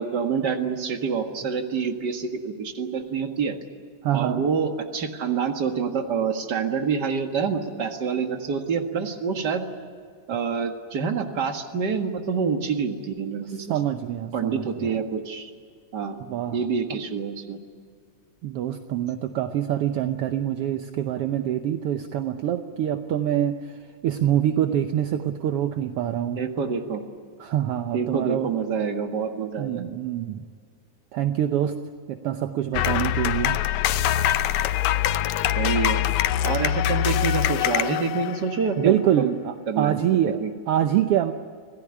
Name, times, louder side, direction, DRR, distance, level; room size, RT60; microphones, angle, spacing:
voice 1, 0.0-3.6 4.1-9.6 10.3-13.7 14.3-15.5 15.9-16.2 16.5-17.6 26.4-27.0 27.9-29.8 35.6-36.0 36.4-39.4 39.7-40.5, right 6 dB, 40° right, 5 dB, 2.0 m, -27 dB
voice 2, 4.0-4.4 13.7-15.0 16.3-16.6 18.4-26.4 27.4-28.5 29.6-30.5 31.1-31.8 32.1-33.6 38.8-40.4 40.7-41.3, right 11 dB, 70° right, 8 dB, 1.5 m, -25 dB
sound 1, 32.7-38.7, left 12 dB, 75° left, 2.0 m, -23 dB
26.0 x 17.0 x 9.9 m, 2.1 s
omnidirectional pair, 3.4 m